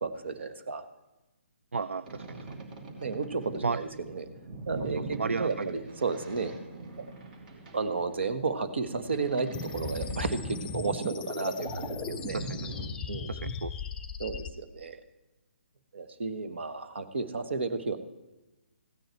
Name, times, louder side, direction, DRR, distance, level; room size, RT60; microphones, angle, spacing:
voice 1, 0.0-0.8 3.0-4.3 4.7-6.5 7.0-7.1 7.7-12.4 13.1-13.5 14.2-15.0 15.9-18.0, right 4 dB, 65° right, 9 dB, 1.3 m, -33 dB
voice 2, 1.7-2.4 3.6-3.8 5.1-5.7 12.3-12.9 13.3-13.7, right 4 dB, 80° right, 14 dB, 0.4 m, -33 dB
Boat Water vehicle, 2.0-12.9, right 2 dB, 45° right, 2.7 m, -42 dB
sound 1, 9.5-14.5, left 5 dB, 10° left, 0.7 m, -38 dB
15.5 x 9.2 x 4.5 m, 1.0 s
figure-of-eight pair, 140°, 7 cm